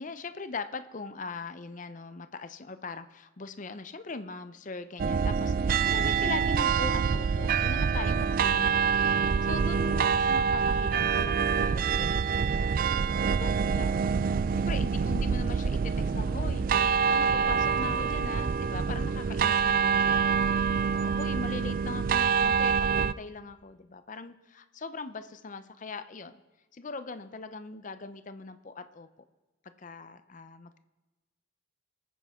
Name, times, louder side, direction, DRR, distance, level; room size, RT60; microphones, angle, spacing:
voice 1, 0.0-12.8 13.2-14.0 14.6-16.7 17.1-20.4 20.9-26.4 26.7-29.1 29.8-30.8, left 4 dB, 40° left, 11 dB, 0.6 m, -40 dB
sound 1, 5.0-23.1, right 6 dB, 45° right, 0.3 m, -26 dB
22.0 x 9.5 x 3.6 m, 1.2 s
head